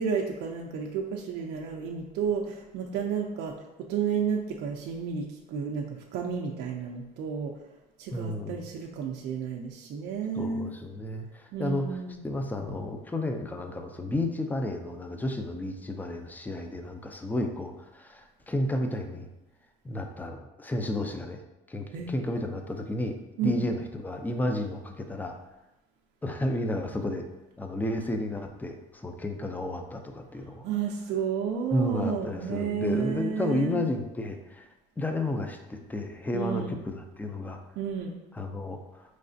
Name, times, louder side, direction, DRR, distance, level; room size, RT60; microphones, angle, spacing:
voice 1, 0.0-5.9 6.1-7.5 8.0-10.7 11.5-12.2 21.9-22.1 23.4-23.6 30.6-33.8 36.3-36.7 37.8-38.1, right 6 dB, 70° right, 1 dB, 0.5 m, -31 dB
voice 2, 8.1-8.7 10.3-19.3 19.8-21.4 21.7-23.1 23.4-25.3 26.2-27.3 27.6-30.7 31.7-34.7 35.0-37.6 38.3-39.0, left 1 dB, 10° left, 5 dB, 0.5 m, -32 dB
4.7 x 3.2 x 2.6 m, 0.98 s
cardioid pair, 100°, 18 cm